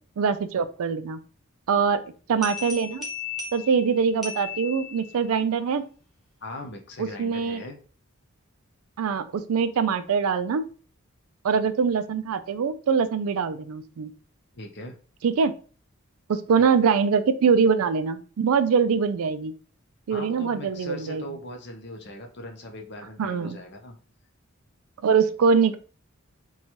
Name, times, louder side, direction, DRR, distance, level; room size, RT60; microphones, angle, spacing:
voice 1, 0.2-1.2 1.7-2.0 2.3-3.1 3.5-5.9 7.0-7.6 9.0-10.7 11.4-14.1 15.2-15.5 16.3-19.5 20.1-21.2 23.2-23.6 25.0-25.8, right 6 dB, 75° right, 12 dB, 0.4 m, -23 dB
sound 1, 2.4-5.4, left 6 dB, ahead, 0.9 m, -36 dB
voice 2, 6.4-7.8 14.5-15.0 16.6-16.7 20.1-23.9, left 1 dB, 50° left, 3 dB, 0.7 m, -40 dB
2.9 x 2.3 x 4.2 m, 0.39 s
head